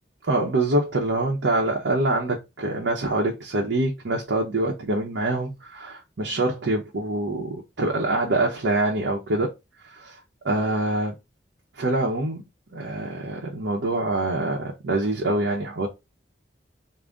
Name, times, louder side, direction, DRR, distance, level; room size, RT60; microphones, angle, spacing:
voice 1, 0.3-9.5 9.9-10.2 10.4-11.1 11.8-12.4 12.7-15.9, right 2 dB, 80° right, 0.8 m, -25 dB
3.8 x 2.1 x 3.5 m
head